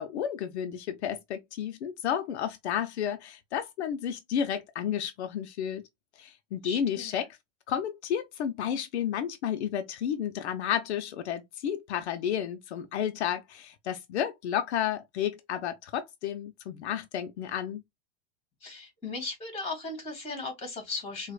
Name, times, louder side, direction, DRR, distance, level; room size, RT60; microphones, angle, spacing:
voice 1, 0.0-5.8 6.2-7.3 7.7-17.8, left 9 dB, 80° left, 0.7 m, -32 dB
voice 2, 6.6-7.2 18.6-21.3, left 3 dB, 20° left, 2.3 m, -37 dB
4.7 x 2.4 x 2.3 m
supercardioid pair, 140°, 32 cm